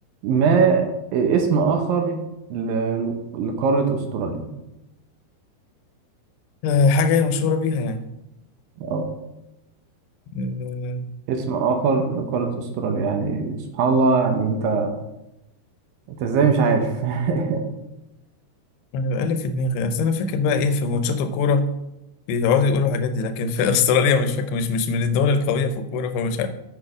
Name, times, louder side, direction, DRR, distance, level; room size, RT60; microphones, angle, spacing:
voice 1, 0.2-0.9 1.1-2.2 2.5-4.5 8.8-9.0 11.3-14.9 16.1-17.6, right 5 dB, 75° right, 5 dB, 2.4 m, -21 dB
voice 2, 6.6-8.1 10.3-11.1 18.9-21.7 22.3-26.5, left 4 dB, 90° left, 9 dB, 2.8 m, -21 dB
8.6 x 6.3 x 4.9 m, 0.91 s
omnidirectional pair, 4.6 m